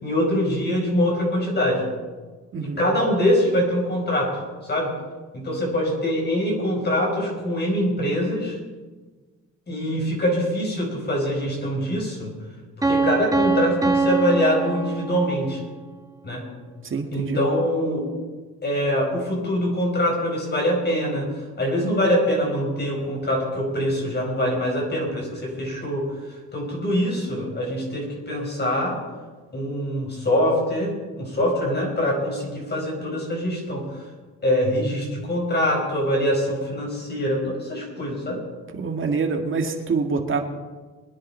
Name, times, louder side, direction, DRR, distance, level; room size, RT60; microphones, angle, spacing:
voice 1, 0.0-1.8 2.6-4.9 5.3-8.6 9.7-12.3 12.8-15.6 16.2-16.4 17.1-18.1 18.6-21.3 21.6-26.1 26.5-29.0 29.5-33.9 34.4-38.4, equal, 35° left, 0 dB, 5.4 m, -24 dB
voice 2, 2.5-2.8 16.8-17.4 38.7-40.4, right 4 dB, 40° right, 4 dB, 2.1 m, -25 dB
Piano, 12.8-15.6, right 3 dB, 10° right, 1.9 m, -23 dB
22.0 x 10.0 x 4.5 m, 1.3 s
cardioid pair, 90°, 30 cm